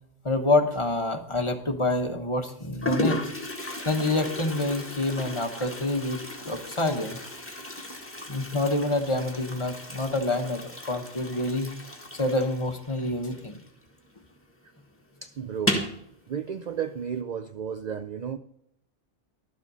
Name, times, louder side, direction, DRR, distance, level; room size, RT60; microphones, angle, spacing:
voice 1, 0.2-3.2 3.8-7.2 8.3-11.7 12.1-13.6, left 2 dB, 25° left, 5 dB, 1.1 m, -27 dB
Toilet flush, 1.3-1.8 2.5-2.6 2.8-14.1 14.4-14.5 14.8-14.9 15.5-16.0, left 1 dB, 10° left, 1.6 m, -34 dB
voice 2, 15.2-15.9 16.3-18.4, right 7 dB, 55° right, 11 dB, 0.5 m, -33 dB
11.5 x 7.4 x 5.5 m, 0.76 s
omnidirectional pair, 1.2 m